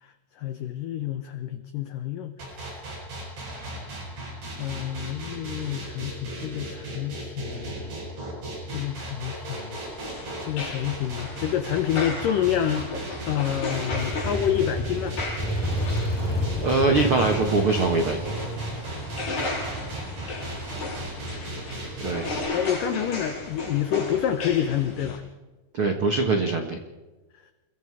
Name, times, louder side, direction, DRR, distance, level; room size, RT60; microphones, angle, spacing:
voice 1, 0.0-2.8 4.6-7.9 8.7-9.8 10.5-12.9 13.3-15.2 22.5-25.2, left 10 dB, 85° left, 9 dB, 1.9 m, -28 dB
sound 1, 2.4-22.4, right 1 dB, 60° right, 9.0 m, -36 dB
sound 2, 9.9-25.2, left 2 dB, 45° left, 8.5 m, -35 dB
Motorcycle, 13.9-21.6, equal, 5° left, 2.6 m, -31 dB
voice 2, 16.6-18.3 22.0-22.3 25.7-26.8, right 3 dB, 80° right, 4 dB, 1.2 m, -23 dB
27.5 x 23.0 x 4.9 m, 1.2 s
omnidirectional pair, 5.2 m